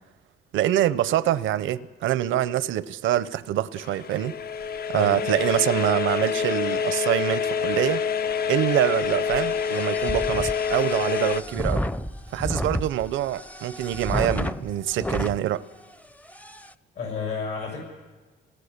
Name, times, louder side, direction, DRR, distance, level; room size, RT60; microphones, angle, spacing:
voice 1, 0.5-4.3 4.9-8.0 8.5-11.8 12.3-15.6, right 12 dB, 80° right, 0.7 m, -25 dB
sound 1, 3.8-11.4, left 7 dB, 50° left, 0.6 m, -27 dB
voice 2, 4.9-5.3 17.0-17.8, left 5 dB, 70° left, 7.1 m, -31 dB
sound 2, 8.7-15.4 15.9-16.0 16.3-16.7, equal, 5° left, 0.6 m, -32 dB
25.5 x 18.0 x 6.7 m
cardioid pair, 90°, 20 cm